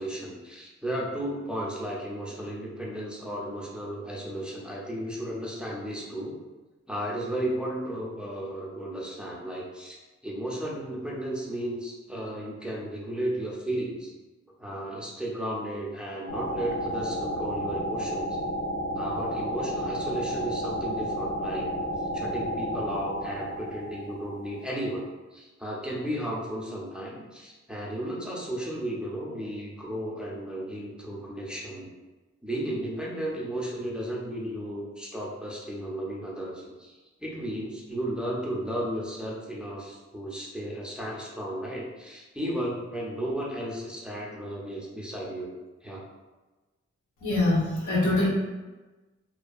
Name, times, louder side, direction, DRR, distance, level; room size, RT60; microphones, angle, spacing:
voice 1, 0.0-6.4 6.9-10.0 10.2-14.1 14.6-18.4 18.9-21.7 22.0-25.0 25.3-31.9 32.4-45.5 45.8-46.0, right 1 dB, 5° right, -4 dB, 0.5 m, -34 dB
sound 1, 16.3-24.9, equal, 60° left, 0.7 m, -32 dB
voice 2, 47.2-48.3, left 2 dB, 85° left, -5 dB, 0.8 m, -24 dB
2.5 x 2.3 x 2.3 m, 1.2 s
wide cardioid pair, 95°, 30 cm